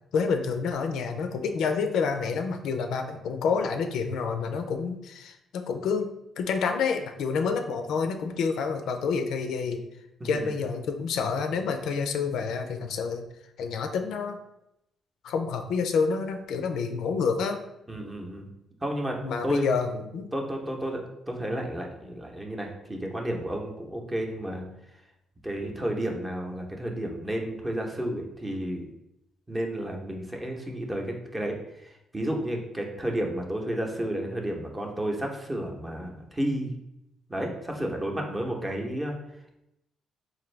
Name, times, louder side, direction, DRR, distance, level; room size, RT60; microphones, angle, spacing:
voice 1, 0.1-9.8 10.2-13.2 13.6-14.4 15.2-17.6 19.2-20.3, left 5 dB, 80° left, 6 dB, 0.4 m, -28 dB
voice 2, 10.2-10.5 17.9-18.5 18.8-19.6 20.3-24.7 25.4-28.9 29.5-36.7 37.3-39.2, right 1 dB, 15° right, 1 dB, 0.7 m, -32 dB
3.9 x 2.6 x 3.2 m, 0.84 s
cardioid pair, 90°, 0 cm